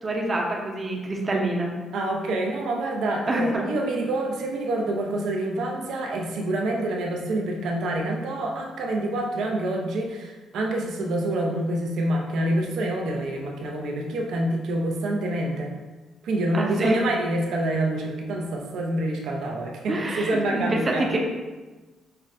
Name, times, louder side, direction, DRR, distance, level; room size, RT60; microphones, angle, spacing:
voice 1, 0.0-1.7 3.3-3.7 16.5-17.0 19.9-21.2, right 1 dB, 35° right, 0 dB, 0.7 m, -26 dB
voice 2, 1.9-15.7 16.2-21.1, right 1 dB, 75° right, 1 dB, 0.5 m, -27 dB
5.4 x 2.1 x 2.5 m, 1.2 s
cardioid pair, 90°, 0 cm